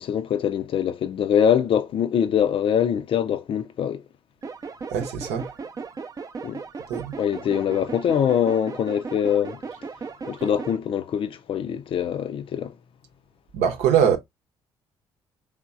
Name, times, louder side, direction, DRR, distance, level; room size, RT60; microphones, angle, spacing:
voice 1, 0.0-4.0 6.4-6.6 7.2-9.6 10.3-12.7, left 8 dB, 50° left, 0.5 m, -23 dB
sound 1, 4.4-10.8, right 4 dB, 30° right, 0.5 m, -37 dB
voice 2, 4.9-5.5 6.9-7.1 13.5-14.2, right 8 dB, 65° right, 0.8 m, -22 dB
3.5 x 3.5 x 2.4 m
figure-of-eight pair, 45°, 12 cm